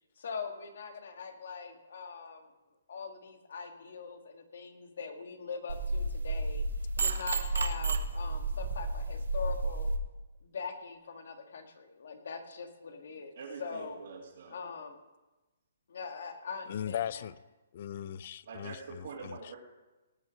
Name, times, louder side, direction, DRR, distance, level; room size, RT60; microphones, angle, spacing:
voice 1, 0.2-2.5 2.9-6.6 7.0-9.9 10.4-14.0 14.5-15.0 15.9-17.3, left 5 dB, 65° left, 5 dB, 1.7 m, -42 dB
sound 1, 5.7-10.0, right 2 dB, 85° right, 1.1 m, -32 dB
voice 2, 13.3-14.6 18.4-19.6, right 4 dB, 60° right, -6 dB, 2.6 m, -45 dB
voice 3, 16.7-17.3 17.7-18.7, left 10 dB, 45° left, 19 dB, 0.4 m, -36 dB
18.5 x 6.2 x 6.2 m, 1.1 s
hypercardioid pair, 165°, 0 cm